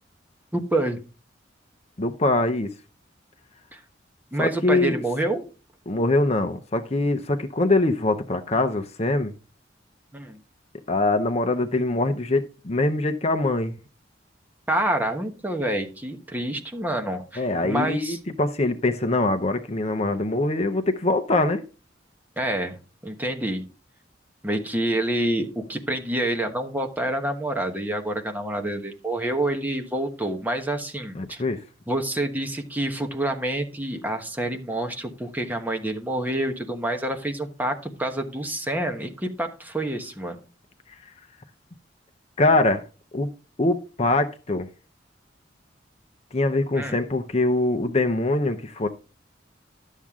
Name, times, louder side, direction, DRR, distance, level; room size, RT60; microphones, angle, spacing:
voice 1, 0.5-1.0 3.7-3.8 4.3-5.4 10.1-10.4 14.7-18.2 22.4-23.6 24.4-31.4 31.9-40.4 46.7-47.0, right 1 dB, 10° right, 1.1 m, -27 dB
voice 2, 2.0-2.7 4.4-5.0 5.9-9.3 10.9-13.7 17.4-21.6 31.2-31.6 42.4-42.8 43.1-43.3 43.6-44.7 46.3-48.9, left 2 dB, 35° left, 0.7 m, -23 dB
12.0 x 7.4 x 3.6 m
head